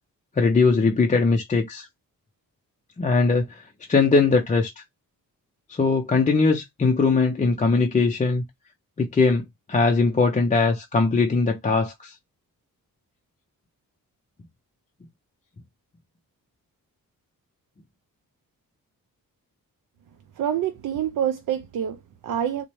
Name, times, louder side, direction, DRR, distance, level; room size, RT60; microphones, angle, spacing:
voice 1, 0.4-1.9 3.0-3.6 3.9-4.8 5.7-8.4 9.0-9.4 9.7-12.1, left 4 dB, 20° left, 0.5 m, -20 dB
voice 2, 20.4-22.6, right 10 dB, 65° right, 0.4 m, -27 dB
4.1 x 2.1 x 3.0 m
wide cardioid pair, 110°, 35 cm